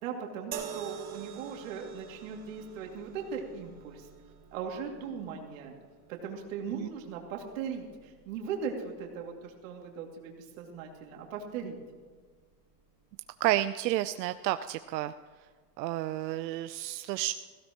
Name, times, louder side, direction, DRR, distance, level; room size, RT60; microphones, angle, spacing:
voice 1, 0.0-4.1 4.5-5.7 6.1-11.8, right 6 dB, 50° right, 1 dB, 2.6 m, -39 dB
sound 1, 0.5-13.8 14.8-15.0, right 8 dB, 20° right, 1.1 m, -48 dB
voice 2, 13.4-15.1 15.8-17.3, right 14 dB, 85° right, 11 dB, 0.7 m, -31 dB
17.0 x 16.0 x 3.0 m, 1.5 s
supercardioid pair, 170°, 50 cm